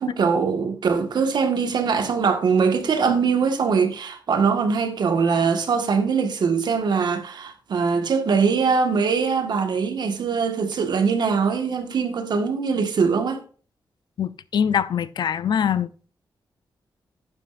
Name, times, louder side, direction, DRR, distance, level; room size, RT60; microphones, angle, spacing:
voice 1, 0.0-13.4, right 5 dB, 65° right, 1.5 m, -22 dB
voice 2, 14.2-15.9, left 8 dB, 65° left, 0.5 m, -23 dB
11.5 x 9.9 x 2.5 m
wide cardioid pair, 155°, 8 cm